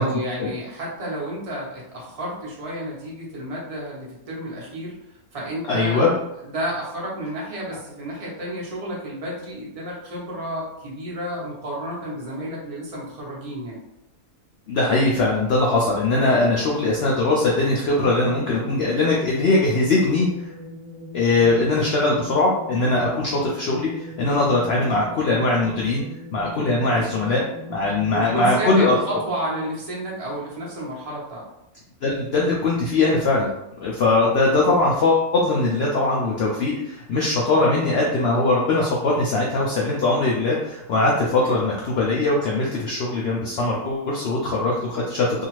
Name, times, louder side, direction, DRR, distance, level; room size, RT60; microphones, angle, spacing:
voice 1, 0.0-5.0 5.3-6.1 6.4-13.8 28.1-31.4 41.3-41.6, equal, 30° right, -5 dB, 0.7 m, -31 dB
voice 2, 5.7-6.1 14.7-20.3 21.1-26.0 26.3-27.4 27.7-28.9 32.0-33.5 33.8-45.4, left 2 dB, 75° left, -4 dB, 0.5 m, -21 dB
sound 1, 18.0-30.9, left 1 dB, 80° right, 1.1 m, -40 dB
2.6 x 2.4 x 3.0 m, 0.86 s
omnidirectional pair, 1.6 m